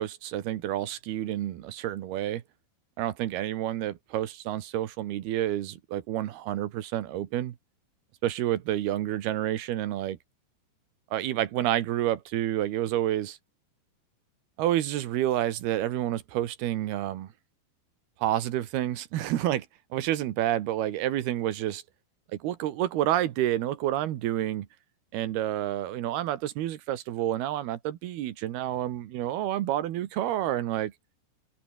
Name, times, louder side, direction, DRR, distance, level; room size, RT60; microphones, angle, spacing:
voice 1, 0.0-2.4 3.0-7.6 8.2-10.2 11.1-13.4 14.6-17.3 18.2-19.7 19.9-21.8 22.3-24.7 25.1-30.9, right 13 dB, 70° right, 3.1 m, -29 dB
open air
omnidirectional pair, 5.2 m